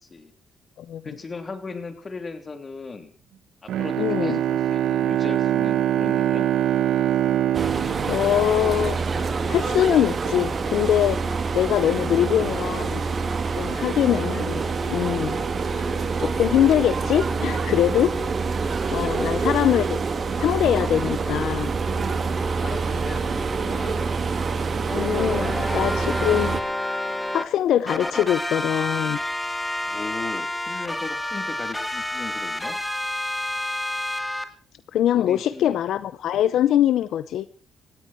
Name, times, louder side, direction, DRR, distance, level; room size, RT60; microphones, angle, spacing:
voice 1, 1.0-3.1 3.6-6.5 13.6-13.8 19.0-19.1 22.3-24.1 29.8-32.8 35.1-35.8, left 4 dB, 35° left, 8 dB, 3.4 m, -37 dB
Bowed string instrument, 3.7-9.2, right 11 dB, 80° right, 1.1 m, -24 dB
voice 2, 4.0-4.4 8.1-9.0 9.5-13.0 13.5-15.4 16.2-18.1 18.9-20.0 20.4-21.7 24.9-26.6 27.3-29.2 34.9-37.5, left 11 dB, 75° left, 16 dB, 0.7 m, -22 dB
Train arrives and leaves station, 7.5-26.6, right 4 dB, 40° right, 2.3 m, -26 dB
sound 1, 24.9-27.4 27.9-34.4, left 1 dB, 10° left, 2.4 m, -29 dB
18.5 x 16.0 x 4.5 m, 0.40 s
cardioid pair, 90°, 0 cm